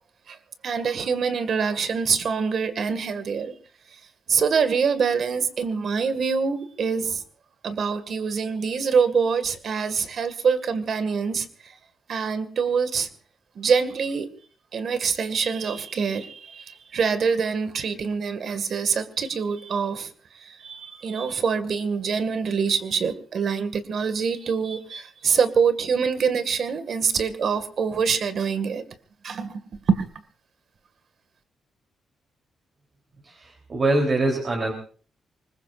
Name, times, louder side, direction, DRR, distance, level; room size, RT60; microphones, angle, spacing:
voice 1, 0.6-3.5 3.9-4.0 4.3-7.2 7.6-11.8 12.1-13.1 13.6-14.3 14.7-28.8 29.2-29.6 29.9-30.0, right 6 dB, 60° right, 2.0 m, -25 dB
voice 2, 33.2-34.7, right 2 dB, 40° right, 3.6 m, -24 dB
25.0 x 20.5 x 2.6 m
cardioid pair, 105°, 0 cm